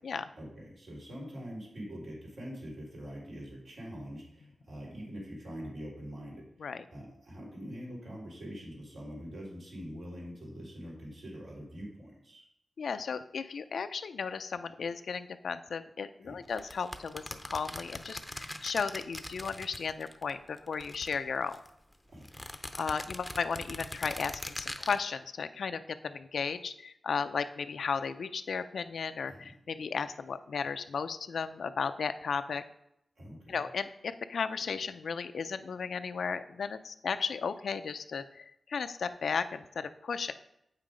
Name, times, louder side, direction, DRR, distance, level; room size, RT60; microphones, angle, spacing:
voice 1, 0.4-12.4 16.2-16.4 22.1-22.4 29.3-29.4 33.2-33.6, equal, 75° right, -4 dB, 3.7 m, -44 dB
voice 2, 12.8-21.6 22.8-32.6 33.5-40.3, left 5 dB, 85° left, 11 dB, 0.5 m, -35 dB
sound 1, 16.5-20.3 20.6-21.7 22.2-25.0, left 1 dB, 5° left, 0.7 m, -42 dB
8.1 x 5.8 x 5.0 m, 0.78 s
wide cardioid pair, 90°, 0 cm